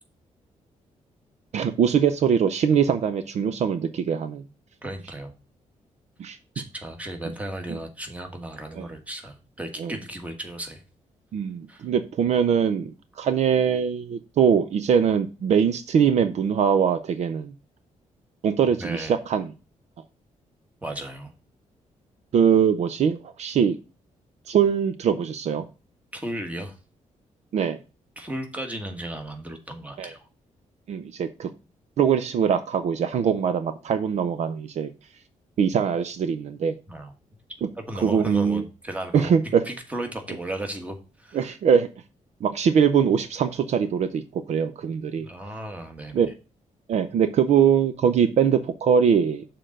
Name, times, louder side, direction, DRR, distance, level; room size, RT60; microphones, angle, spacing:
voice 1, 1.5-4.4 6.2-6.4 8.8-8.9 9.8-9.9 11.3-12.9 13.2-17.5 18.4-19.5 22.3-23.8 24.5-25.6 27.5-27.8 30.0-30.1 30.9-31.5 32.0-34.9 35.6-36.8 38.0-38.6 39.1-39.6 41.3-41.9 42.4-45.3 46.1-46.3 46.9-49.5, right 7 dB, 60° right, 10 dB, 0.6 m, -22 dB
voice 2, 4.8-5.3 6.5-10.8 11.7-11.9 18.8-19.2 20.8-21.3 26.1-26.7 28.2-30.3 36.9-37.1 37.7-41.5 45.2-46.3, right 1 dB, 10° right, 4 dB, 1.4 m, -35 dB
6.7 x 3.8 x 6.4 m, 0.31 s
wide cardioid pair, 160°, 13 cm